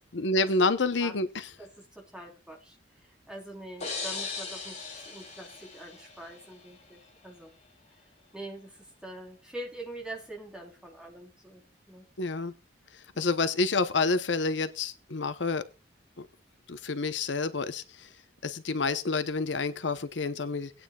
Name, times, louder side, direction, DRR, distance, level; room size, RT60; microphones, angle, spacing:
voice 1, 0.1-1.5 12.2-12.5 13.2-15.6 16.2-16.3 16.7-18.1 18.4-20.7, left 3 dB, 70° left, 11 dB, 0.9 m, -28 dB
voice 2, 1.6-2.8 3.3-7.5 8.3-11.6 11.9-12.1 13.1-13.4, right 1 dB, 5° right, 0 dB, 3.6 m, -44 dB
sound 1, 3.8-6.6, left 4 dB, 40° left, 4.2 m, -38 dB
20.0 x 9.3 x 2.3 m, 0.29 s
head